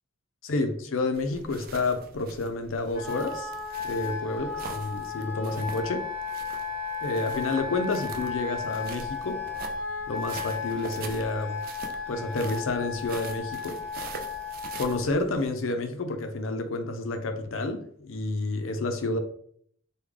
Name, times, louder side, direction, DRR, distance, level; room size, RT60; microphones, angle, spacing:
voice 1, 0.4-3.5 3.8-6.0 7.0-9.4 10.1-11.6 12.1-13.8 14.8-19.2, left 2 dB, 85° left, 6 dB, 0.5 m, -29 dB
sound 1, 1.1-15.5, right 4 dB, 45° right, 0.3 m, -44 dB
Wind instrument woodwind instrument, 2.9-15.0, left 5 dB, 90° right, 0.9 m, -35 dB
3.6 x 2.2 x 3.2 m, 0.63 s
head